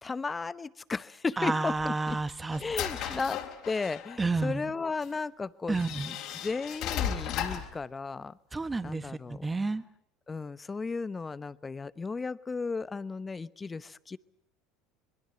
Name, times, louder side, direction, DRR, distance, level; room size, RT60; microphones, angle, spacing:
voice 1, 0.0-2.2 2.6-3.4 3.7-6.2 6.4-8.4 8.8-9.5 10.3-14.2, left 4 dB, 20° left, 17 dB, 0.9 m, -35 dB
voice 2, 1.4-2.6 3.0-3.2 4.2-4.7 5.7-6.2 8.5-9.8, right 3 dB, 15° right, 13 dB, 1.6 m, -31 dB
sound 1, 1.7-4.2 5.0-5.1 5.7-7.8, left 9 dB, 60° left, 4.1 m, -35 dB
25.0 x 21.5 x 7.9 m, 0.72 s
hypercardioid pair, 80°, 0 cm